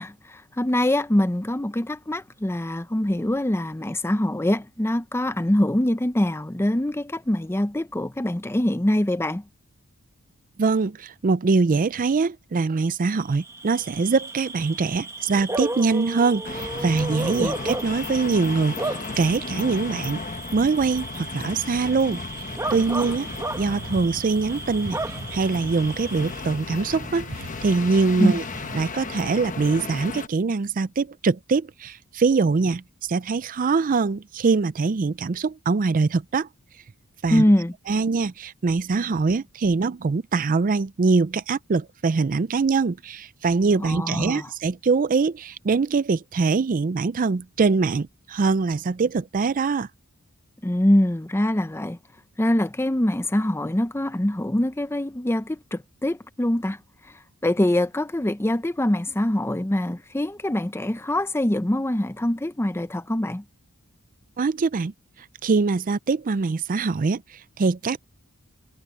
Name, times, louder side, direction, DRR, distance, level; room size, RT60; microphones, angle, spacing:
voice 1, 0.0-9.4 17.4-17.6 28.2-28.4 37.3-37.7 43.8-44.5 50.6-52.0 52.4-56.8 57.4-63.4, left 1 dB, 10° left, 0.6 m, -24 dB
voice 2, 10.6-20.2 20.5-22.2 22.7-23.3 23.6-28.4 28.7-32.8 33.1-36.5 37.2-37.4 37.9-49.9 64.4-64.9 65.4-67.2 67.6-68.1, right 4 dB, 40° right, 0.4 m, -23 dB
Bark / Cricket, 13.3-26.6, right 2 dB, 15° right, 1.6 m, -34 dB
sound 1, 16.4-30.3, left 3 dB, 35° left, 1.1 m, -35 dB
sound 2, 22.7-28.9, right 1 dB, 70° right, 4.5 m, -42 dB
head